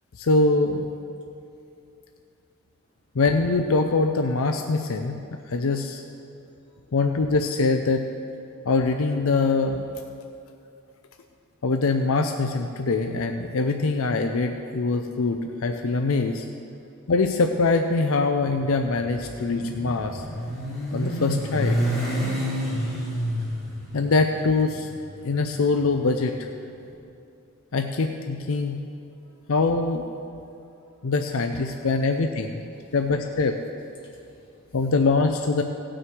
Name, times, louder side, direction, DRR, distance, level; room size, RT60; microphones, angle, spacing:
voice 1, 0.2-0.9 3.2-5.2 5.5-6.0 6.9-8.0 8.7-9.8 11.6-16.5 17.1-20.2 20.9-22.0 23.9-24.9 25.2-26.5 27.7-28.8 29.5-30.0 31.0-32.6 32.9-33.6 34.7-35.6, left 3 dB, 70° left, 5 dB, 0.5 m, -23 dB
Motorcycle, 18.5-26.7, equal, ahead, 2.4 m, -29 dB
voice 2, 30.3-30.9 31.3-32.1 32.8-33.0 34.0-34.7, equal, 20° left, -7 dB, 2.7 m, -59 dB
17.5 x 6.3 x 4.7 m, 2.6 s
head